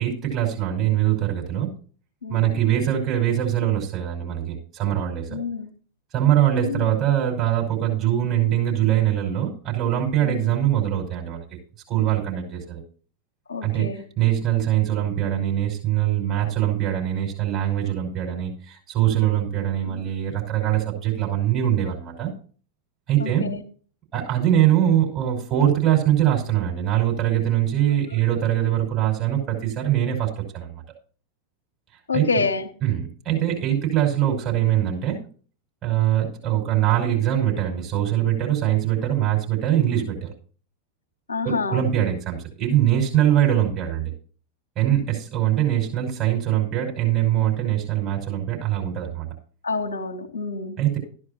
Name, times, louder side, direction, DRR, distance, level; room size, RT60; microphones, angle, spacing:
voice 1, 0.0-1.7 2.3-5.4 6.1-11.6 11.9-12.8 13.6-22.3 23.1-23.5 24.1-30.8 32.1-32.4 32.8-35.2 35.8-40.3 41.4-44.1 44.8-49.3 50.8-51.0, right 11 dB, 35° right, 0 dB, 5.6 m, -22 dB
voice 2, 2.2-2.6 5.3-5.7 6.6-6.9 10.2-10.6 13.5-14.0 19.8-20.0 23.2-23.6 32.1-32.7 41.3-41.9 49.6-50.8, left 4 dB, 70° left, 7 dB, 1.1 m, -28 dB
14.0 x 11.0 x 2.9 m, 0.41 s
figure-of-eight pair, 90°, 0 cm